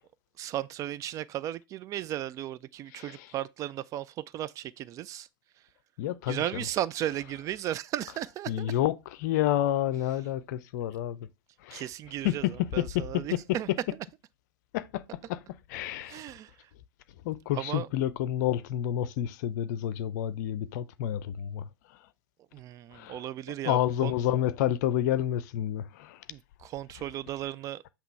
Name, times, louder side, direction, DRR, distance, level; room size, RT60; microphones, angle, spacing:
voice 1, 0.4-5.3 6.3-8.7 11.7-13.7 16.1-16.7 17.5-17.9 22.5-24.1 26.3-27.8, right 12 dB, 25° right, 0.3 m, -35 dB
voice 2, 2.9-3.2 6.0-6.6 8.5-8.9 9.2-11.3 11.6-11.8 12.2-13.2 14.7-15.0 15.3-15.4 15.7-16.2 17.2-21.7 22.9-23.2 23.6-26.2, left 12 dB, 50° left, 0.6 m, -29 dB
7.9 x 3.0 x 4.5 m
figure-of-eight pair, 90°, 12 cm